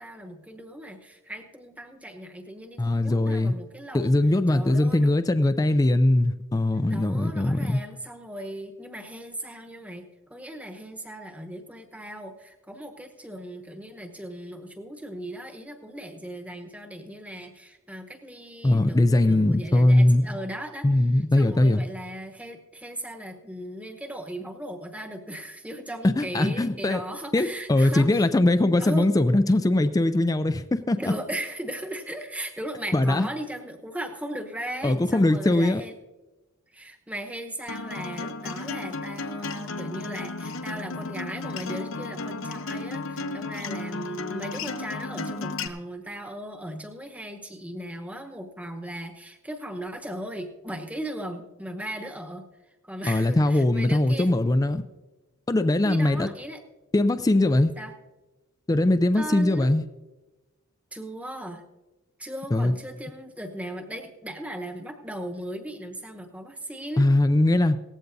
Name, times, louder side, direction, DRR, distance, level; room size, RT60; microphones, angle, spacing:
voice 1, 0.0-4.1 4.5-5.1 6.7-10.0 10.3-28.3 28.8-29.1 31.0-35.9 36.7-52.5 52.8-54.3 55.8-56.6 57.8-57.9 59.1-59.7 60.9-61.7 62.2-67.1, right 1 dB, 5° right, 4 dB, 1.0 m, -37 dB
voice 2, 2.8-3.5 3.9-7.8 18.6-20.2 20.8-21.8 26.0-27.0 27.3-31.1 32.9-33.3 34.8-35.8 53.1-54.8 55.5-56.3 56.9-57.7 58.7-59.8 62.5-62.7 67.0-67.8, left 1 dB, 15° left, 10 dB, 0.3 m, -21 dB
Acoustic guitar, 37.7-45.7, left 3 dB, 60° left, 0.8 m, -34 dB
18.0 x 15.0 x 2.7 m, 1.1 s
head